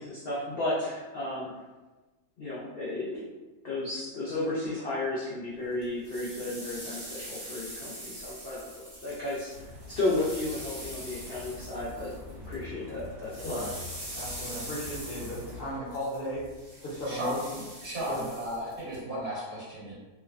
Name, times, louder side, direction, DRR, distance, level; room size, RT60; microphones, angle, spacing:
voice 1, 0.0-1.5 2.4-3.3 3.6-13.6, left 2 dB, 85° left, -7 dB, 0.5 m, -33 dB
sound 1, 5.8-12.6 12.9-19.0, right 1 dB, 15° right, 0.7 m, -43 dB
sound 2, 9.5-15.8, left 2 dB, 80° right, 1.2 m, -45 dB
voice 2, 14.2-16.5 16.8-17.4 18.1-18.3, equal, 50° left, -7 dB, 0.8 m, -35 dB
voice 3, 17.0-17.3 17.8-19.9, right 1 dB, 60° right, -9 dB, 1.6 m, -35 dB
3.1 x 2.0 x 2.4 m, 1.2 s
omnidirectional pair, 1.6 m